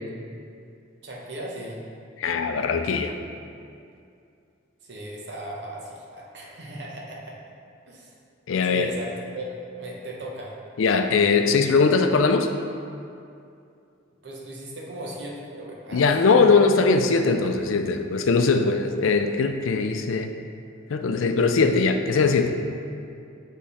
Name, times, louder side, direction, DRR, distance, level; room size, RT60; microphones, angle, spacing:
voice 1, 1.0-1.8 4.8-7.4 7.9-8.1 8.6-10.6 14.2-16.1, right 1 dB, 60° right, -2 dB, 1.0 m, -37 dB
voice 2, 2.2-3.1 8.5-8.9 10.8-12.5 15.9-20.3 20.9-22.5, left 4 dB, 90° left, 7 dB, 0.4 m, -20 dB
7.5 x 3.6 x 4.2 m, 2.5 s
head